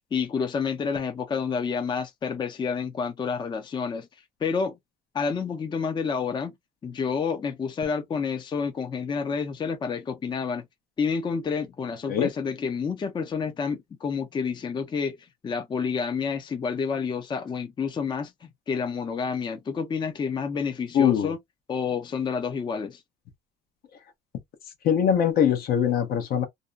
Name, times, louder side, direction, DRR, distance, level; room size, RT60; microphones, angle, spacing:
voice 1, 0.1-4.1 4.4-4.8 5.1-6.6 6.8-10.6 11.0-15.2 15.4-21.4 21.7-23.0, left 5 dB, 30° left, 0.5 m, -29 dB
voice 2, 20.9-21.3 24.8-26.5, left 8 dB, 65° left, 0.8 m, -22 dB
2.6 x 2.1 x 2.3 m
cardioid pair, 110°, 17 cm